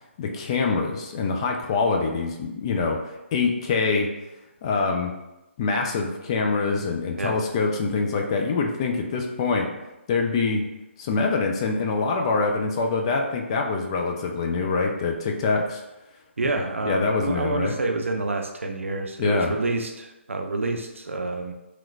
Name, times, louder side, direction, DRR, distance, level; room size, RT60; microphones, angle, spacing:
voice 1, 0.2-3.0 3.3-4.1 4.6-5.1 5.6-9.7 10.1-10.6 11.0-15.8 16.8-17.8 19.2-19.5, left 4 dB, 25° left, 2 dB, 0.3 m, -24 dB
voice 2, 16.4-21.5, right 2 dB, 80° right, 4 dB, 0.5 m, -28 dB
3.0 x 3.0 x 2.5 m, 0.97 s
figure-of-eight pair, 150°, 7 cm